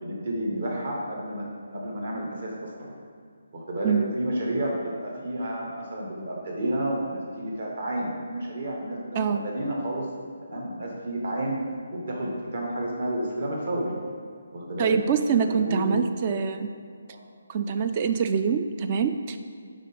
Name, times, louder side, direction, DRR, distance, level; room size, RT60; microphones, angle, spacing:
voice 1, 0.0-1.4 1.7-2.9 3.5-10.1 10.5-11.6 11.9-13.9 14.5-15.0 15.5-16.0 16.3-16.4 17.1-17.2, right 1 dB, 55° right, -2 dB, 1.8 m, -31 dB
voice 2, 3.8-4.1 9.1-9.5 14.8-16.7 17.5-19.4, right 6 dB, 30° right, 8 dB, 0.4 m, -25 dB
6.3 x 5.2 x 5.4 m, 2.2 s
figure-of-eight pair, 145°, 0 cm